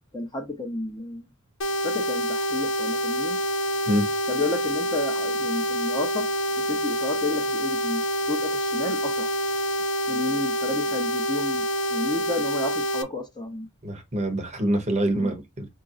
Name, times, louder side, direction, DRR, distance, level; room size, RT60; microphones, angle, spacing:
voice 1, 0.1-1.3 1.8-3.4 4.3-6.3 6.7-8.0 8.3-9.3 10.1-13.7 15.1-15.3, left 2 dB, 20° left, 0.9 m, -31 dB
sound 1, 1.6-13.0, equal, 65° left, 0.8 m, -27 dB
voice 2, 13.8-15.7, right 1 dB, 35° right, 0.9 m, -25 dB
5.1 x 2.7 x 2.5 m
head